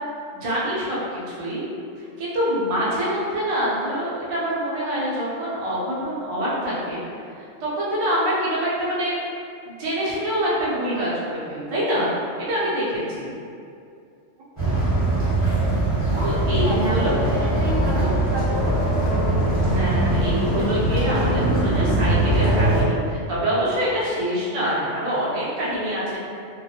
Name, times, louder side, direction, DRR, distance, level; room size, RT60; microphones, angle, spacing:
voice 1, 0.3-1.6 2.0-7.0 7.4-9.2 9.6-13.3 16.2-17.2 19.7-26.2, equal, 50° right, -8 dB, 0.4 m, -25 dB
sound 1, 14.6-22.8, right 1 dB, 15° right, 0.7 m, -21 dB
voice 2, 16.6-18.7, right 2 dB, 85° right, -4 dB, 1.0 m, -31 dB
2.2 x 2.0 x 2.8 m, 2.4 s
omnidirectional pair, 1.3 m